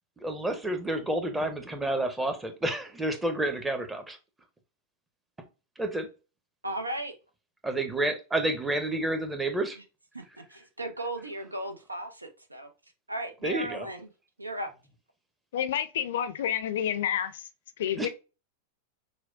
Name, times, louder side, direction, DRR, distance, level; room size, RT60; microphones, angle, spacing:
voice 1, 0.2-4.2 5.8-6.1 7.6-9.8 13.4-13.9 18.0-18.1, right 1 dB, 10° right, 0.8 m, -29 dB
voice 2, 6.6-7.1 10.1-12.7 13.1-14.1 14.4-14.7, right 1 dB, 85° right, 0.7 m, -36 dB
voice 3, 15.5-17.5 17.8-18.1, left 9 dB, 60° left, 0.5 m, -29 dB
6.0 x 2.2 x 2.6 m
figure-of-eight pair, 90°, 0 cm